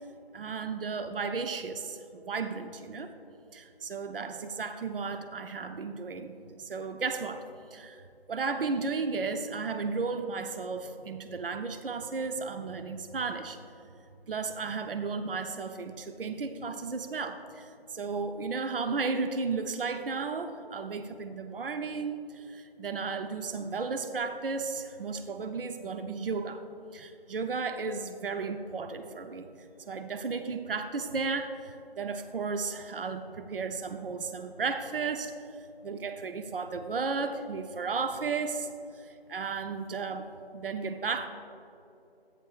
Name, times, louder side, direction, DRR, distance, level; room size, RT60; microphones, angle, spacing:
voice 1, 0.3-3.1 3.5-8.0 8.3-13.6 14.3-26.6 26.9-29.5 29.9-35.3 35.8-38.7 39.0-40.3 40.5-41.3, right 4 dB, 60° right, 8 dB, 0.6 m, -34 dB
13.5 x 9.2 x 2.4 m, 2.8 s
figure-of-eight pair, 170°, 31 cm